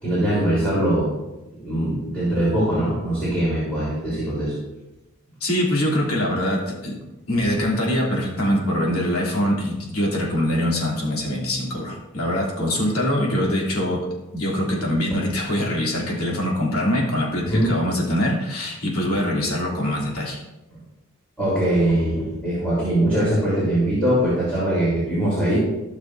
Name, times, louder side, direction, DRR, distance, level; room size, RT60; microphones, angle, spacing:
voice 1, 0.0-1.1 1.6-4.5 17.4-17.7 21.4-25.6, right 1 dB, 5° left, -9 dB, 3.6 m, -22 dB
voice 2, 5.4-7.0 7.3-14.0 14.3-20.4, left 1 dB, 80° left, -4 dB, 3.0 m, -23 dB
16.0 x 6.4 x 2.6 m, 1.0 s
head